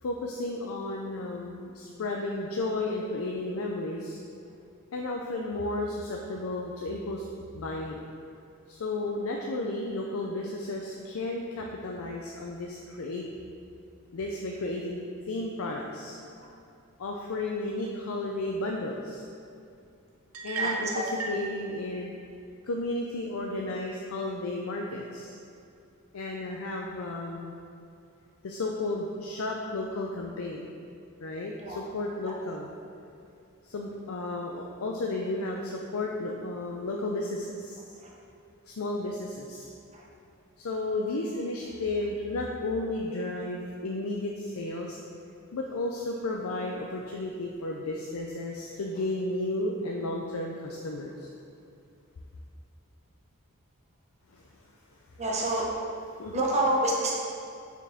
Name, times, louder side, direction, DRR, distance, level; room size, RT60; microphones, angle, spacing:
voice 1, 0.0-4.2 4.9-7.3 7.5-8.0 8.7-13.3 14.1-15.0 15.3-16.2 17.0-19.2 20.4-22.1 22.6-25.4 26.1-27.5 28.4-30.7 31.2-32.7 33.6-38.0 38.7-39.7 40.6-45.0 45.5-51.3 54.3-54.4 56.2-56.4, left 2 dB, 75° left, 0 dB, 0.5 m, -33 dB
sound 1, 20.3-21.5, right 4 dB, 75° right, 0.6 m, -33 dB
voice 2, 20.6-21.0 31.6-31.8 39.9-40.0 55.2-55.7 56.3-57.1, right 1 dB, 30° right, -2 dB, 0.9 m, -27 dB
5.9 x 4.6 x 3.5 m, 2.6 s
head